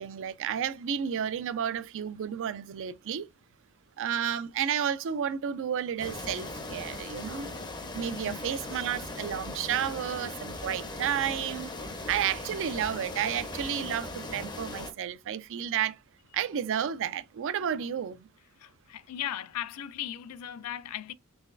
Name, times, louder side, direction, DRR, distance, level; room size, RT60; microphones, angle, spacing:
voice 1, 0.0-3.3 4.0-7.5 7.9-11.7 12.1-16.0 16.3-18.3, right 9 dB, 60° right, 0.4 m, -31 dB
sound 1, 6.0-14.9, left 2 dB, 20° left, 0.6 m, -39 dB
voice 2, 8.1-8.5 17.9-18.0 18.6-21.1, left 11 dB, 85° left, 0.4 m, -37 dB
3.9 x 3.1 x 2.5 m
head